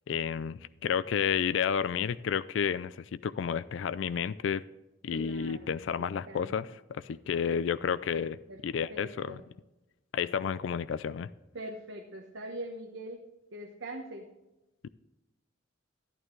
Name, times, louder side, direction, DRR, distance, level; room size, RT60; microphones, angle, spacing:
voice 1, 0.1-4.6 5.0-8.4 8.6-9.4 10.1-11.3 14.8-14.9, left 7 dB, 75° left, 16 dB, 0.3 m, -31 dB
voice 2, 5.1-6.5 8.5-8.6 8.9-9.4 11.5-13.2 13.5-14.3, right 1 dB, 80° right, 2 dB, 1.1 m, -43 dB
11.5 x 11.0 x 3.2 m, 1.0 s
head